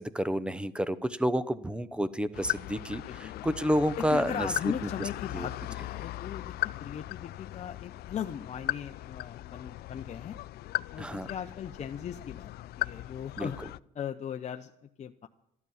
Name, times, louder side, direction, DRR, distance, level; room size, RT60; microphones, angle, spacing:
voice 1, 0.0-4.5 5.3-5.5 11.0-11.3 13.4-13.5, equal, 5° right, 15 dB, 0.8 m, -30 dB
sound 1, 2.3-13.8, left 16 dB, 70° left, 0.4 m, -38 dB
voice 2, 3.0-3.5 4.0-6.5 6.8-10.4 10.9-13.6 13.9-15.3, left 8 dB, 40° left, 6 dB, 0.8 m, -38 dB
13.5 x 12.0 x 7.2 m, 0.82 s
cardioid pair, 110°, 17 cm